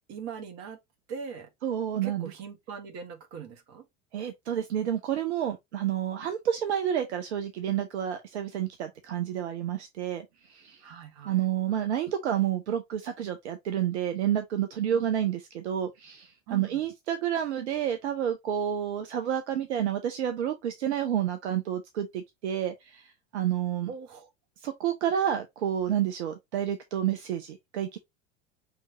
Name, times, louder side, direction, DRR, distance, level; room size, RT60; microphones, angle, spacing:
voice 1, 0.1-0.8 1.1-1.5 2.0-3.8 10.8-11.4 14.9-15.1 16.5-16.8 23.9-24.3, right 6 dB, 45° right, 1.4 m, -41 dB
voice 2, 1.6-2.3 4.1-10.8 11.2-23.9 24.6-28.0, right 10 dB, 70° right, 0.8 m, -29 dB
5.3 x 3.3 x 2.8 m
figure-of-eight pair, 75°, 35 cm